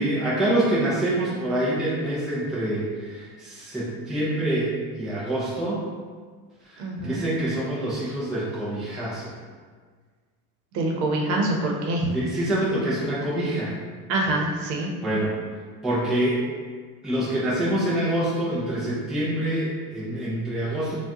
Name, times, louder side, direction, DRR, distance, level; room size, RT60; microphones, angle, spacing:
voice 1, 0.0-5.8 6.7-9.3 12.1-13.8 15.0-15.3 15.8-16.4 17.0-21.0, right 1 dB, ahead, -8 dB, 0.3 m, -26 dB
voice 2, 6.8-7.2 10.7-12.1 14.1-14.9, right 2 dB, 80° right, 0 dB, 0.8 m, -25 dB
4.7 x 2.3 x 2.8 m, 1.6 s
cardioid pair, 155°, 42 cm